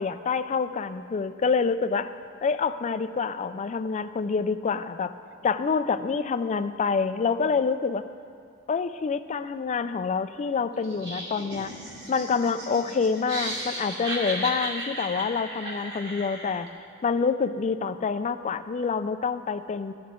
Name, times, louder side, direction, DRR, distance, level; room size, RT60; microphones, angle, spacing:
voice 1, 0.0-2.1 2.4-5.1 5.4-8.0 8.7-11.7 12.1-16.7 17.0-19.9, left 5 dB, 35° left, 11 dB, 0.4 m, -27 dB
Laughter, 10.8-16.7, right 1 dB, 55° right, 2.7 m, -35 dB
14.5 x 10.5 x 3.7 m, 2.5 s
head